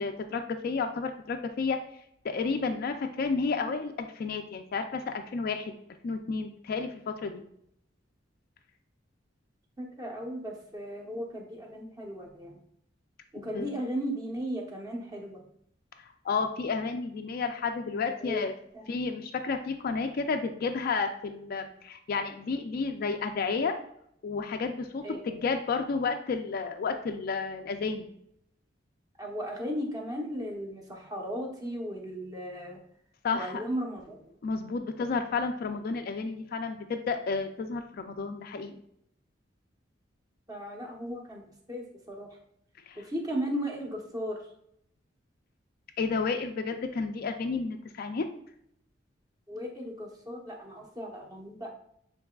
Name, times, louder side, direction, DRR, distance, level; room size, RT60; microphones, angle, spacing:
voice 1, 0.0-1.8 2.2-5.7 6.0-7.4 13.4-13.7 16.2-18.5 18.9-23.7 24.2-28.1 33.2-33.6 34.4-38.8 42.9-43.0 46.0-48.3, left 4 dB, 55° left, 5 dB, 0.4 m, -31 dB
voice 2, 9.8-12.5 13.4-15.4 18.2-18.4 25.0-25.2 29.2-32.8 33.3-34.2 40.5-41.4 41.7-42.3 43.0-44.3 49.5-51.7, equal, 20° right, 0 dB, 0.9 m, -36 dB
7.0 x 3.2 x 2.3 m, 0.72 s
head